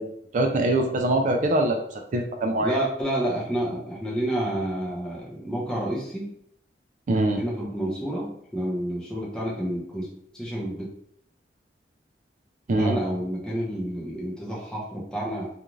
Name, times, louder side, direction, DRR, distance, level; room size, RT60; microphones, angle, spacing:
voice 1, 0.0-1.8 2.1-2.8 7.1-7.4 12.7-13.0, right 1 dB, 45° right, 3 dB, 0.4 m, -23 dB
voice 2, 2.6-6.3 7.4-10.1 10.3-10.9 12.8-15.5, right 1 dB, 5° left, -5 dB, 0.8 m, -29 dB
2.5 x 2.4 x 3.0 m, 0.67 s
head